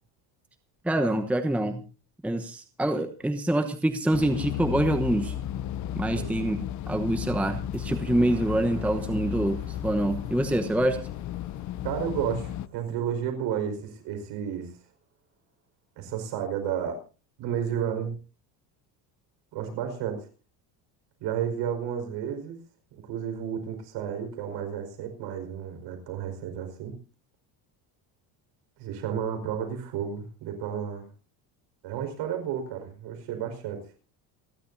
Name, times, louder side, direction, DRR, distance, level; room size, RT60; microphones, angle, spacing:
voice 1, 0.8-1.8 2.2-5.3 6.0-6.6 6.9-11.0, right 1 dB, 5° right, 1.0 m, -26 dB
sound 1, 4.1-12.7, left 11 dB, 40° left, 0.7 m, -34 dB
sound 2, 7.7-14.5 14.9-15.0, right 4 dB, 30° right, 5.0 m, -50 dB
voice 2, 11.8-14.7 16.0-17.0 17.4-18.2 19.5-20.3 21.2-22.6 23.0-27.0 28.8-31.1 31.8-33.9, right 8 dB, 65° right, 5.1 m, -32 dB
28.0 x 12.0 x 2.7 m
cardioid pair, 165°, 45 cm